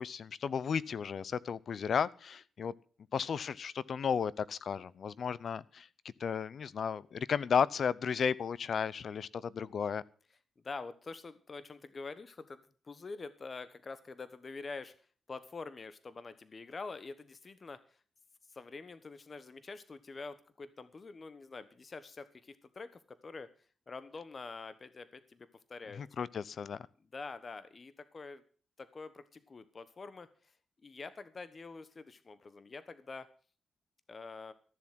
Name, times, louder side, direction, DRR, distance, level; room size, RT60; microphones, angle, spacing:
voice 1, 0.0-2.7 3.1-5.9 6.2-10.0 26.0-26.9, left 7 dB, 65° left, 21 dB, 0.6 m, -34 dB
voice 2, 10.6-14.9 15.3-17.8 18.5-23.5 23.9-26.0 27.1-28.4 28.8-30.3 30.8-33.3 34.1-34.5, left 4 dB, 45° left, 13 dB, 1.2 m, -46 dB
13.5 x 7.4 x 7.6 m, 0.42 s
cardioid pair, 70°, 0 cm